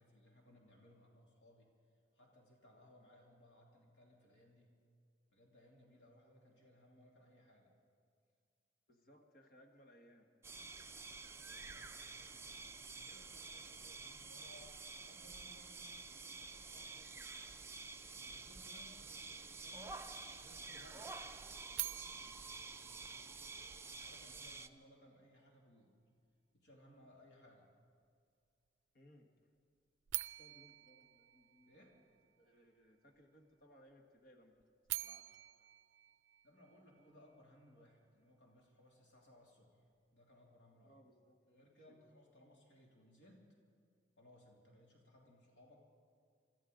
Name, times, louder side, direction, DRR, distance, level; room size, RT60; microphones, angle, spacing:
voice 1, 0.0-1.7 2.1-4.7 5.3-7.8 10.7-10.9 11.2-17.4 18.1-20.0 20.4-20.9 21.9-23.5 24.0-26.0 26.5-27.7 31.7-32.0 36.4-40.9 41.5-43.5 44.2-45.8, left 1 dB, 85° left, -2 dB, 2.8 m, -65 dB
voice 2, 8.9-10.3 20.7-21.1 28.9-29.3 30.4-32.1 32.4-34.5 34.9-35.3 40.8-42.0, equal, 55° left, 3 dB, 1.6 m, -65 dB
sound 1, 10.4-24.7, right 4 dB, 15° right, 0.5 m, -50 dB
sound 2, 21.7-23.9 30.1-32.2 34.6-37.0, right 17 dB, 85° right, 0.4 m, -46 dB
25.0 x 14.0 x 3.9 m, 2.2 s
head